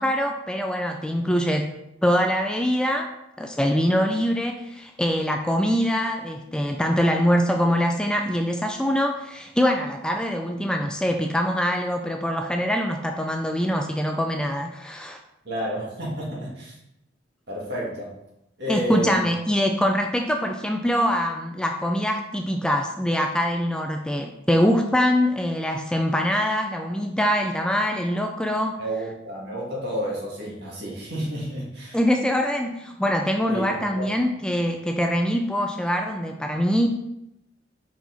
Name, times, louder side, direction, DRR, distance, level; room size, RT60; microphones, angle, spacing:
voice 1, 0.0-1.7 2.0-3.1 3.4-15.2 18.7-28.8 31.9-36.9, equal, 5° left, 4 dB, 0.3 m, -23 dB
voice 2, 15.4-16.7 17.5-18.1 18.6-19.3 28.8-32.0 33.5-34.0, right 1 dB, 60° right, -4 dB, 2.3 m, -30 dB
5.5 x 4.8 x 4.0 m, 0.85 s
head